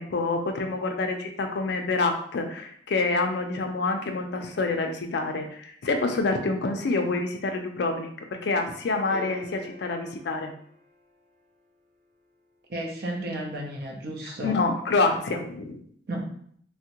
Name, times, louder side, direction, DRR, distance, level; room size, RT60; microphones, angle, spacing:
voice 1, 0.0-10.5 14.4-15.8, left 3 dB, 60° left, 4 dB, 0.4 m, -27 dB
sound 1, 9.1-11.6 13.8-13.9, left 2 dB, 5° right, 0.6 m, -45 dB
voice 2, 12.7-14.6 16.1-16.3, right 1 dB, 55° right, 1 dB, 0.6 m, -33 dB
3.4 x 2.1 x 2.8 m, 0.63 s
head